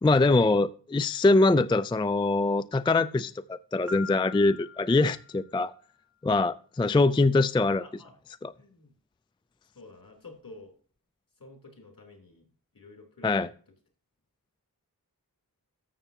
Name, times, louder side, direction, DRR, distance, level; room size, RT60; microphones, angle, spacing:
voice 1, 0.0-5.7 6.2-7.8 8.4-8.5 13.2-13.5, left 3 dB, 15° left, 0.3 m, -23 dB
Piano, 3.9-5.8, left 6 dB, 5° right, 1.5 m, -43 dB
voice 2, 7.7-8.1 8.6-8.9 9.7-10.7 11.4-12.4 12.7-13.5, left 3 dB, 65° left, 3.4 m, -50 dB
14.0 x 6.9 x 2.8 m
wide cardioid pair, 75°, 36 cm